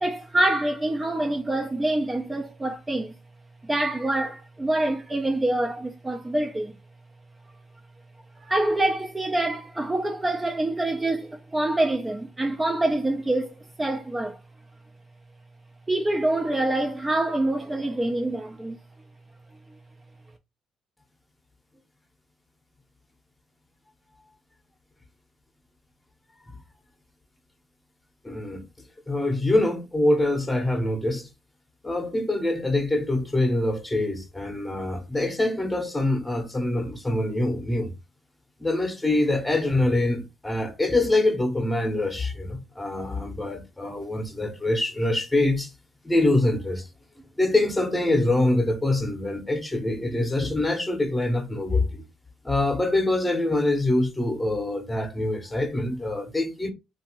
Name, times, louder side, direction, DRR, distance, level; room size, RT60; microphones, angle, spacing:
voice 1, 0.0-3.1 3.6-6.7 8.4-14.4 15.9-18.8, right 1 dB, 15° right, 0.4 m, -26 dB
voice 2, 28.2-28.7 29.1-31.3 31.8-37.9 38.6-45.7 46.0-46.9 47.4-52.0 52.4-56.7, left 2 dB, 15° left, 0.8 m, -24 dB
2.8 x 2.5 x 2.8 m
cardioid pair, 90°, 0 cm